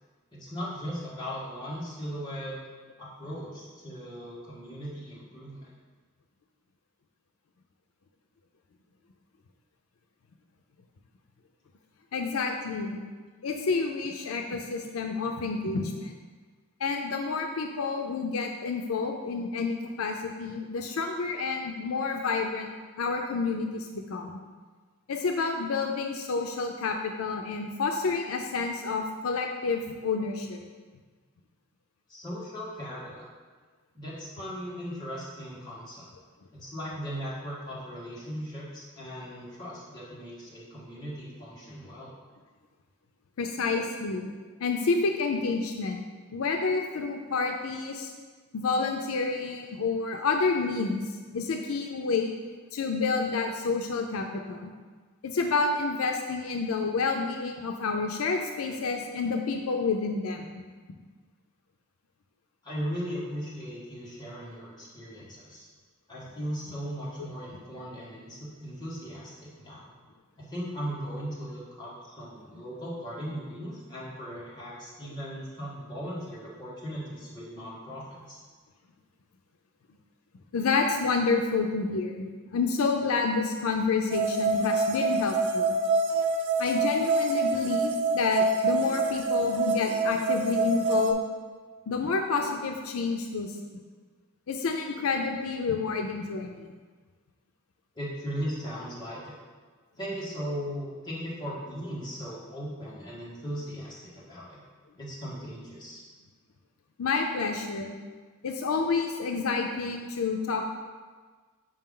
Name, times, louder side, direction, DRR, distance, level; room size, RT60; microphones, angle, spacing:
voice 1, 0.3-2.6 3.0-5.7 32.1-33.3 33.9-36.1 36.5-42.1 62.6-65.7 66.1-69.9 70.4-78.4 97.9-99.4 100.0-104.6 105.0-106.0, equal, 20° left, -8 dB, 1.6 m, -38 dB
voice 2, 12.1-13.0 13.4-16.1 16.8-22.7 23.0-24.4 25.1-30.6 43.4-44.3 44.6-46.0 46.3-48.1 48.5-51.0 51.3-52.3 52.7-54.7 55.2-60.6 80.5-85.8 86.6-91.3 91.9-93.6 94.5-96.7 107.0-107.9 108.4-110.6, left 4 dB, 80° left, 3 dB, 0.5 m, -29 dB
sound 1, 84.1-91.1, right 2 dB, 60° right, 0.5 m, -26 dB
5.6 x 4.9 x 3.7 m, 1.4 s
head